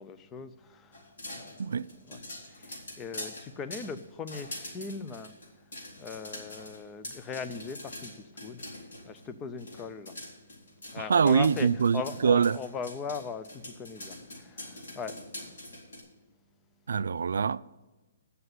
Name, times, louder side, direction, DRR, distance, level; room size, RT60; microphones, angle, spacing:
voice 1, 0.0-15.5, left 5 dB, 10° left, 0.3 m, -40 dB
sound 1, 0.9-9.3 9.6-16.0, left 1 dB, 70° left, 4.0 m, -44 dB
voice 2, 11.1-12.5 16.9-17.8, right 6 dB, 70° right, 0.3 m, -24 dB
9.4 x 6.8 x 7.9 m
hypercardioid pair, 180°, 0 cm